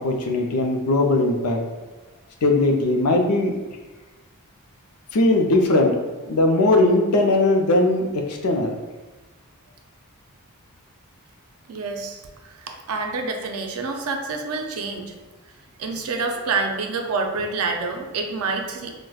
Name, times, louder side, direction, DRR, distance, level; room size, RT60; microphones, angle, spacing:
voice 1, 0.0-1.6 2.4-3.6 5.1-8.8, left 2 dB, 85° left, 3 dB, 0.5 m, -19 dB
voice 2, 11.7-15.1 15.8-18.9, right 4 dB, 70° right, 3 dB, 0.5 m, -27 dB
4.8 x 2.1 x 2.3 m, 1.2 s
head